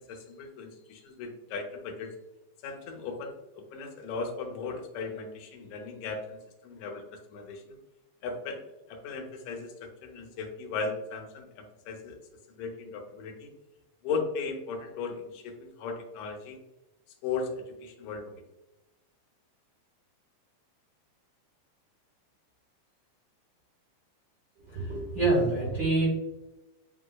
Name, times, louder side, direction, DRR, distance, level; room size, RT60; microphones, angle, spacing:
voice 1, 0.0-2.2 2.6-7.1 7.3-7.8 8.2-8.6 8.9-9.7 10.0-12.2 12.5-13.5 14.0-16.6 17.2-18.4, left 4 dB, 75° left, 2 dB, 1.9 m, -37 dB
voice 2, 24.6-26.1, right 2 dB, 55° right, -7 dB, 1.0 m, -26 dB
7.8 x 2.7 x 2.2 m, 1.0 s
omnidirectional pair, 3.3 m